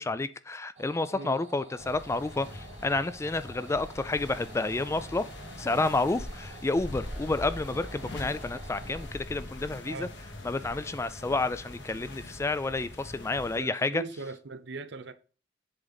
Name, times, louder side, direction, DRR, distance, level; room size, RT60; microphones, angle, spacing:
voice 1, 0.0-5.2 5.6-10.1 10.4-14.0, left 3 dB, 15° left, 0.3 m, -30 dB
sound 1, 0.8-9.1, right 3 dB, 40° right, 1.1 m, -50 dB
sound 2, 1.7-13.6, left 1 dB, 70° left, 1.5 m, -42 dB
voice 2, 13.6-15.1, right 3 dB, 70° right, 0.7 m, -40 dB
7.6 x 3.9 x 4.0 m
head